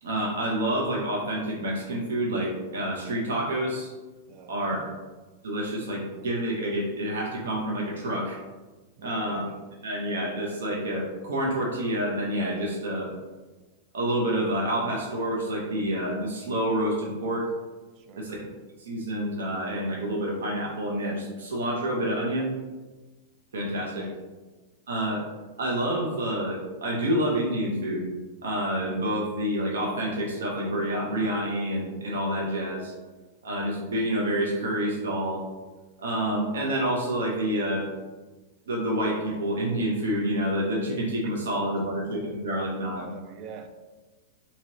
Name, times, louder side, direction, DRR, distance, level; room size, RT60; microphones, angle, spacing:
voice 1, 0.0-3.9 4.5-4.9 5.4-8.4 9.0-9.5 9.8-13.1 13.9-17.5 18.2-18.5 18.8-22.5 23.5-24.1 24.9-25.2 25.6-28.1 28.4-32.9 33.4-35.4 36.0-37.9 38.7-43.1, right 1 dB, 90° right, -2 dB, 0.6 m, -28 dB
voice 2, 4.3-4.8 9.0-9.3 18.0-18.3 23.9-24.2 43.0-43.7, right 6 dB, 40° right, 8 dB, 0.3 m, -45 dB
2.9 x 2.8 x 2.7 m, 1.2 s
supercardioid pair, 140°, 0 cm